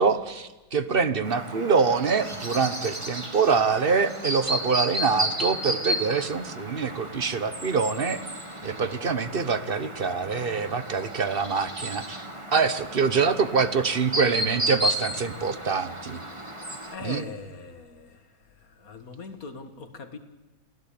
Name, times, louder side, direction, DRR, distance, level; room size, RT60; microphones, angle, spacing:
voice 1, 0.0-8.2 8.6-12.3 12.5-16.2 17.0-17.2, right 5 dB, 35° right, 12 dB, 1.0 m, -25 dB
Chirp tweet, 1.2-16.9, equal, 15° right, 2.1 m, -33 dB
voice 2, 16.9-18.2 18.6-20.2, left 4 dB, 45° left, 8 dB, 2.2 m, -40 dB
29.0 x 16.5 x 8.6 m, 1.1 s
omnidirectional pair, 2.1 m